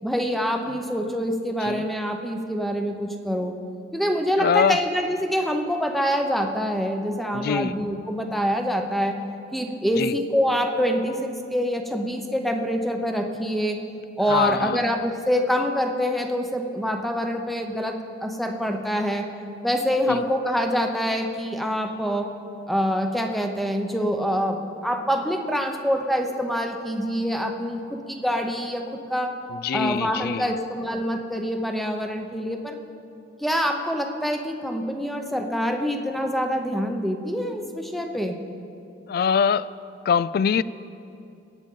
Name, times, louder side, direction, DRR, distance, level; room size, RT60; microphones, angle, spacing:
voice 1, 0.0-3.5 3.9-9.2 9.5-13.8 14.2-19.3 19.6-22.3 22.7-29.3 29.7-32.8 33.4-38.4, equal, ahead, 3 dB, 0.8 m, -25 dB
voice 2, 4.4-4.8 7.3-7.8 10.0-10.1 14.3-14.8 20.1-20.2 29.5-30.6 39.1-39.7 40.1-40.6, left 6 dB, 55° left, 18 dB, 0.3 m, -23 dB
22.5 x 8.9 x 3.9 m, 2.7 s
head